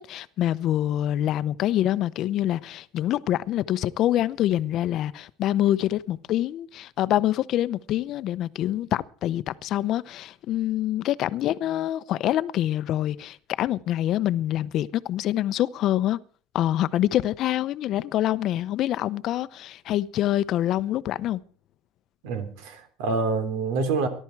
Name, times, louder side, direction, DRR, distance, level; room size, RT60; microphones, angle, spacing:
voice 1, 0.1-16.2 16.5-21.4, left 13 dB, 50° left, 0.7 m, -25 dB
voice 2, 22.2-24.1, right 4 dB, 85° right, 3.4 m, -27 dB
20.0 x 12.0 x 4.7 m
cardioid pair, 145°, 0 cm